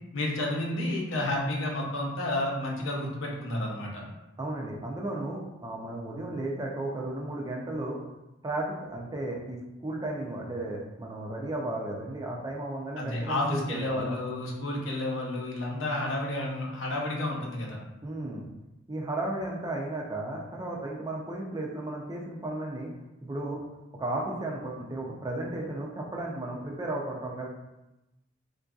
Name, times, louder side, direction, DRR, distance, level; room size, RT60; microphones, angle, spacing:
voice 1, 0.1-4.0 13.0-17.8, left 1 dB, 75° left, -2 dB, 0.7 m, -31 dB
voice 2, 4.4-8.0 8.4-9.6 9.8-14.2 18.0-18.5 18.9-22.9 23.2-23.6 24.0-27.5, right 2 dB, 20° right, -1 dB, 0.4 m, -34 dB
3.6 x 2.6 x 2.3 m, 0.96 s
head